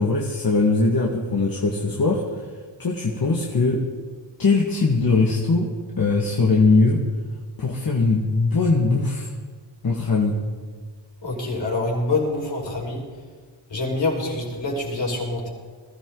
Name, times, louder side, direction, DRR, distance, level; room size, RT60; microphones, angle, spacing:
voice 1, 0.0-2.2 2.8-3.8 4.4-5.7 6.0-7.0 7.6-9.3 9.8-10.3, left 3 dB, 45° left, -2 dB, 2.0 m, -20 dB
voice 2, 11.2-13.1 13.7-15.5, left 2 dB, 65° left, -2 dB, 5.3 m, -26 dB
21.0 x 13.5 x 4.0 m, 1.5 s
cardioid pair, 65°, 48 cm